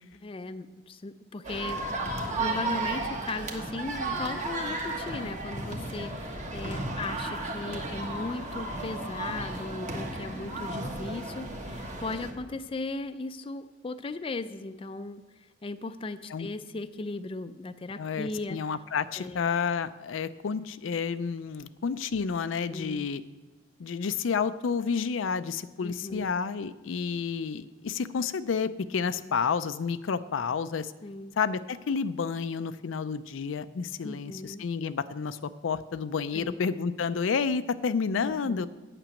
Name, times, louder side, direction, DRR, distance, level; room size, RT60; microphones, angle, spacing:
voice 1, 0.2-1.9 2.4-15.2 15.6-18.6 19.2-19.5 22.7-23.1 25.8-26.3 29.2-29.3 31.0-31.3 34.0-34.6 36.3-36.6 38.2-38.7, left 3 dB, 30° left, 11 dB, 0.4 m, -37 dB
sound 1, 1.4-12.3, right 2 dB, 40° right, 1.3 m, -34 dB
voice 2, 18.0-23.2 23.8-30.9 31.4-38.7, left 5 dB, 90° left, 13 dB, 0.4 m, -30 dB
8.9 x 6.0 x 8.2 m, 1.3 s
head